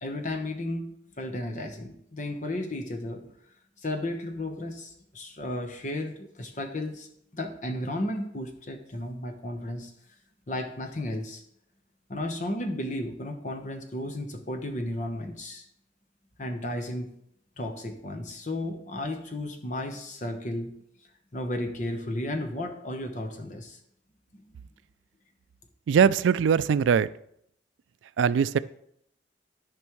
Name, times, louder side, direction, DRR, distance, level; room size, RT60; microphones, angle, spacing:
voice 1, 0.0-3.3 3.8-7.1 7.3-9.9 10.5-11.4 12.1-15.6 16.4-17.1 17.6-20.7 21.3-23.8 24.3-24.4, left 1 dB, 40° left, 5 dB, 1.0 m, -34 dB
voice 2, 25.9-27.1 28.2-28.6, right 7 dB, 85° right, 17 dB, 0.3 m, -21 dB
14.0 x 5.3 x 3.1 m, 0.73 s
head